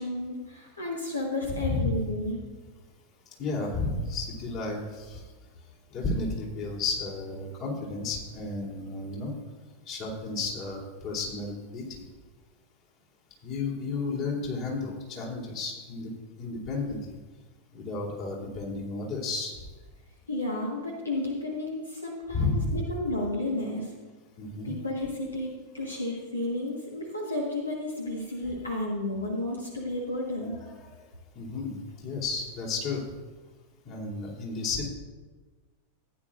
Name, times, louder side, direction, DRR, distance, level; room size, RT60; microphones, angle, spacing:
voice 1, 0.0-2.4 20.3-23.9 24.6-25.5 25.7-30.6, left 1 dB, 80° left, -1 dB, 1.4 m, -32 dB
voice 2, 3.4-5.2 5.9-9.3 9.9-12.0 13.4-16.1 16.4-17.0 17.7-19.5 22.3-22.8 24.4-24.7 30.4-31.0 31.3-33.0 33.8-34.9, left 3 dB, 40° left, -3 dB, 2.9 m, -32 dB
14.5 x 9.6 x 2.5 m, 1.3 s
figure-of-eight pair, 90°, 0 cm